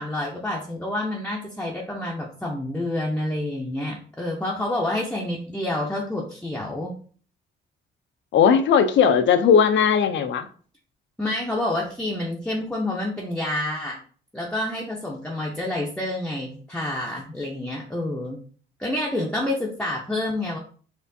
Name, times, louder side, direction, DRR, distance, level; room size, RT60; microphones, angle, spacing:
voice 1, 0.0-6.9 11.2-14.0 14.3-18.4 18.8-20.6, left 1 dB, 5° left, 0.6 m, -28 dB
voice 2, 8.3-10.5, left 7 dB, 70° left, 0.5 m, -18 dB
4.4 x 2.5 x 2.6 m
cardioid pair, 90°, 20 cm